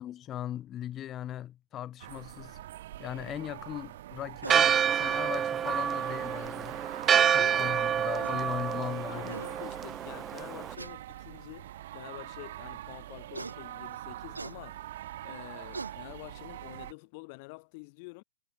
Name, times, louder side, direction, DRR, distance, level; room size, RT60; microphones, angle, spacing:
voice 1, 0.0-2.6 3.0-6.8 7.3-9.4, left 12 dB, 25° left, 6.5 m, -39 dB
sound 1, 2.0-16.9, right 14 dB, 55° right, 7.5 m, -44 dB
sound 2, 4.4-4.7 6.2-6.3 7.8-7.9 8.2-8.4 9.0-9.1 9.3-9.5 10.8-11.0 11.8-11.9 13.3-13.6 14.3-14.6 15.3-15.4 15.7-16.0, right 3 dB, 90° right, 7.6 m, -40 dB
Church bell, 4.5-10.7, right 9 dB, 20° right, 0.8 m, -28 dB
voice 2, 7.2-7.7 8.2-8.3 9.1-14.9 15.2-18.2, left 30 dB, 45° left, 4.2 m, -47 dB
figure-of-eight pair, 110°, 0 cm